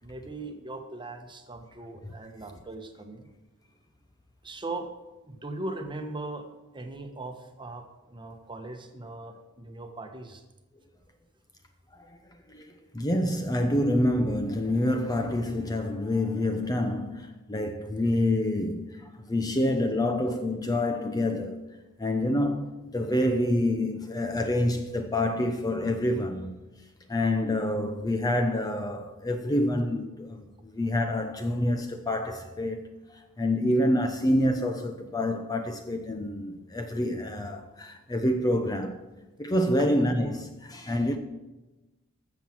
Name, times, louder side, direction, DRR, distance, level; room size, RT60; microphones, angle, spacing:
voice 1, 0.0-3.3 4.4-4.9 5.2-6.5 6.7-10.4 39.8-39.9, right 2 dB, 20° right, 1.2 m, -39 dB
voice 2, 12.9-21.6 22.0-26.6 27.1-39.0 39.4-41.2, left 1 dB, 20° left, 0.8 m, -27 dB
13.5 x 7.2 x 6.0 m
head